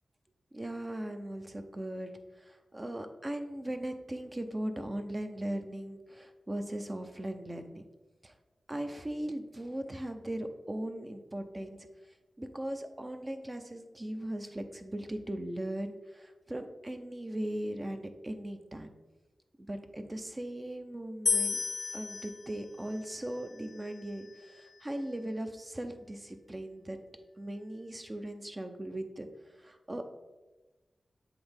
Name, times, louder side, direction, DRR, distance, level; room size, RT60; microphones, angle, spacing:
voice 1, 0.5-2.1 2.7-7.8 8.2-8.3 8.7-11.9 12.4-18.9 19.6-21.6 21.9-27.0 27.4-29.3 29.6-30.1, right 1 dB, 30° right, 6 dB, 0.7 m, -38 dB
sound 1, 21.3-24.5, left 5 dB, 70° left, 0.4 m, -34 dB
7.8 x 3.5 x 3.5 m, 1.1 s
cardioid pair, 50°, 0 cm